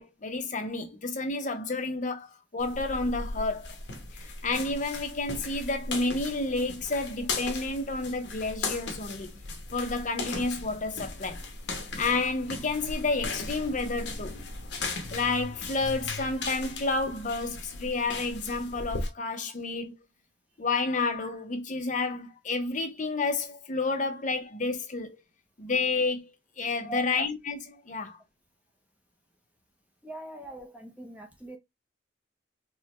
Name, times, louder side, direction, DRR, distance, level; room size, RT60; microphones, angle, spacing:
voice 1, 0.0-3.7 4.1-9.3 9.7-11.4 12.0-14.4 15.1-19.9 20.6-25.2 25.6-26.3 26.6-28.2, left 3 dB, 40° left, 0.6 m, -30 dB
sound 1, 2.6-19.1, left 3 dB, 60° left, 0.9 m, -37 dB
voice 2, 30.0-31.6, right 2 dB, 5° right, 0.5 m, -41 dB
4.6 x 2.1 x 3.0 m
head